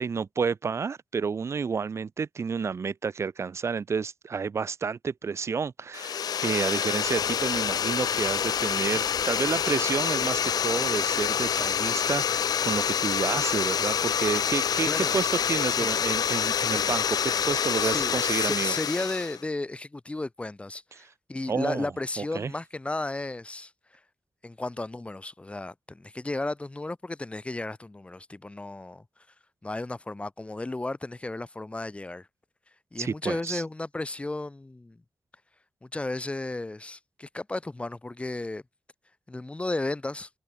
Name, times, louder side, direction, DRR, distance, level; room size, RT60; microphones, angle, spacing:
voice 1, 0.0-18.8 21.5-21.9 22.2-22.5 33.0-33.6, right 5 dB, 45° right, 0.5 m, -30 dB
sound 1, 5.9-19.4, left 8 dB, 85° left, 0.5 m, -27 dB
Boiling, 7.0-18.8, left 6 dB, 70° left, 6.4 m, -48 dB
voice 2, 17.8-23.7 24.4-29.0 29.6-32.3 32.9-35.0 35.8-38.6 39.3-40.3, left 2 dB, 20° left, 1.5 m, -34 dB
wide cardioid pair, 145°, 6 cm